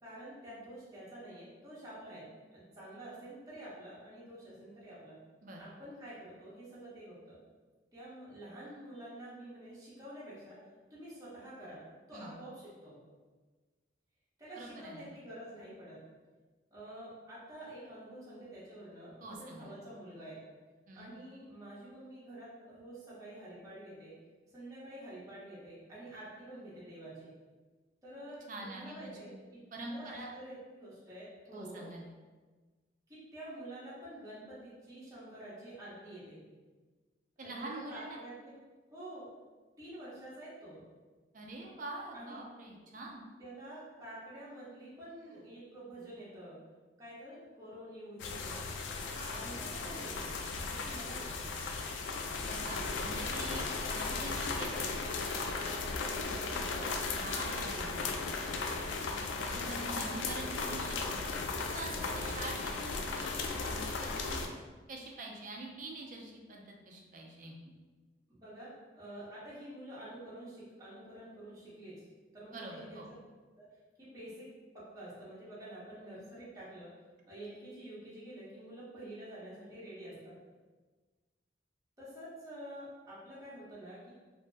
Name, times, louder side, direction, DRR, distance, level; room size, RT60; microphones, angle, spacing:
voice 1, 0.0-2.2 2.5-5.2 5.6-7.3 7.9-10.6 10.9-11.8 12.1-13.0 14.4-16.0 16.7-20.4 20.9-24.1 24.5-27.3 28.0-29.6 29.9-31.9 33.1-36.4 37.4-38.5 38.9-39.3 39.8-40.8 42.1-42.4 43.4-46.6 47.0-48.6 49.1-51.6 53.4-53.8 56.0-58.2 59.7-60.1 61.9-62.2 68.3-72.1 72.3-73.0 73.6-73.7 74.0-74.5 74.7-76.9 77.3-80.3 82.0-84.1, right 1 dB, 20° right, -10 dB, 0.8 m, -48 dB
voice 2, 14.5-15.1 19.2-19.7 20.9-21.1 28.5-29.2 29.7-30.3 31.5-32.1 37.4-38.2 41.3-43.2 52.4-55.0 57.2-58.2 59.3-61.4 61.7-64.4 64.9-67.5 72.5-73.1, right 2 dB, 45° right, -1 dB, 0.4 m, -45 dB
sound 1, 48.2-64.5, left 4 dB, 90° left, 0.3 m, -36 dB
2.6 x 2.1 x 3.2 m, 1.3 s
head